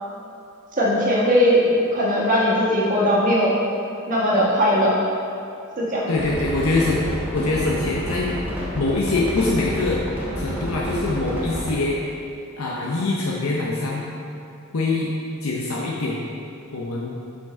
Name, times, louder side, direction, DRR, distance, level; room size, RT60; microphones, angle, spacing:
voice 1, 0.8-3.6 4.1-5.0 5.8-6.1, equal, 40° right, -7 dB, 1.5 m, -19 dB
voice 2, 6.1-7.0 7.3-8.3 8.8-10.0 10.4-12.0 12.6-14.1 14.7-15.1 15.4-16.2 16.7-17.2, left 2 dB, 70° left, -3 dB, 0.7 m, -24 dB
sound 1, 6.2-11.7, equal, 10° right, 1.3 m, -29 dB
5.8 x 5.2 x 4.3 m, 2.6 s
head